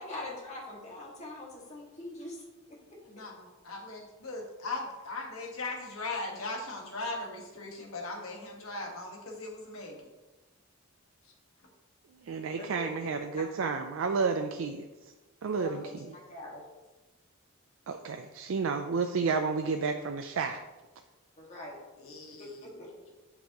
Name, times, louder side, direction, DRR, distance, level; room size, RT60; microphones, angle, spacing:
voice 1, 0.0-2.8 13.6-13.7 15.5-15.8 16.1-16.6 21.4-21.8 22.4-23.1, left 2 dB, 35° left, -3 dB, 1.7 m, -43 dB
voice 2, 3.0-10.0 22.0-22.8, left 2 dB, 90° left, -1 dB, 1.5 m, -39 dB
voice 3, 12.2-14.9 15.4-16.1 17.9-20.6, right 5 dB, 75° right, 6 dB, 0.4 m, -31 dB
8.6 x 5.3 x 2.9 m, 1.2 s
head